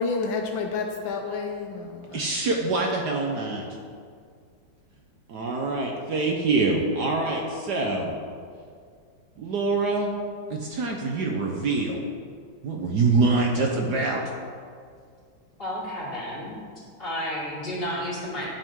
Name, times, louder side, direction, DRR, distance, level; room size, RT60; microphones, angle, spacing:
voice 1, 0.0-2.2, left 4 dB, 75° left, 3 dB, 1.4 m, -29 dB
voice 2, 2.1-3.6 5.3-8.1 9.4-10.1 10.5-12.0 12.6-14.2, right 3 dB, 60° right, 0 dB, 1.4 m, -25 dB
voice 3, 15.6-16.6 17.0-18.5, equal, 25° left, -8 dB, 3.2 m, -31 dB
12.0 x 8.1 x 3.7 m, 2.1 s
omnidirectional pair, 2.2 m